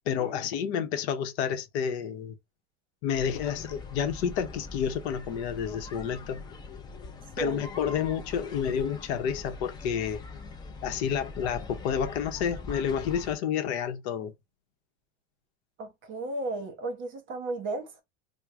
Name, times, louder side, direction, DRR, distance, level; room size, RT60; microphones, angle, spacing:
voice 1, 0.1-2.3 3.0-6.4 7.4-10.2 10.8-14.3, left 8 dB, 65° left, 0.8 m, -30 dB
sound 1, 3.1-13.3, left 3 dB, 10° left, 0.4 m, -42 dB
voice 2, 15.8-18.0, right 2 dB, 35° right, 1.0 m, -34 dB
4.5 x 2.2 x 2.5 m
supercardioid pair, 140°, 36 cm